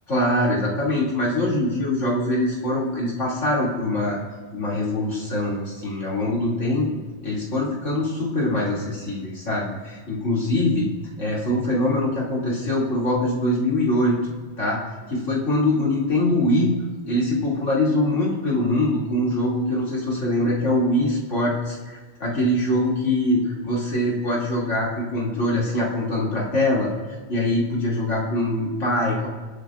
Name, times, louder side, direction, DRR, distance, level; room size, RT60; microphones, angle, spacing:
voice 1, 0.1-4.2 4.5-6.9 7.2-10.9 11.2-14.2 14.6-14.8 15.1-16.7 17.1-26.9 27.3-29.3, left 1 dB, 90° left, -5 dB, 3.2 m, -23 dB
23.5 x 9.2 x 2.5 m, 1.5 s
omnidirectional pair, 1.2 m